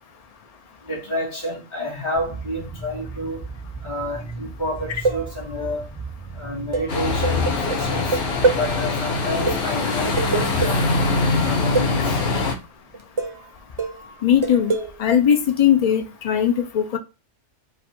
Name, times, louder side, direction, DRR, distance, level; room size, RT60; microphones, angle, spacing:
voice 1, 0.9-3.4 3.8-5.8 6.4-8.2 8.6-10.8 11.4-12.0, left 1 dB, 25° left, 1.9 m, -29 dB
sound 1, 2.1-8.8, right 3 dB, ahead, 0.7 m, -36 dB
sound 2, 4.8-5.7 6.7-8.7 9.1-9.2 9.5-10.9 11.8-12.1 12.9-13.5 13.8-15.0, right 3 dB, 35° right, 0.4 m, -25 dB
sound 3, 6.9-12.5, left 3 dB, 60° left, 1.3 m, -23 dB
voice 2, 14.2-17.0, left 9 dB, 80° left, 0.3 m, -19 dB
4.9 x 2.4 x 4.3 m
omnidirectional pair, 1.3 m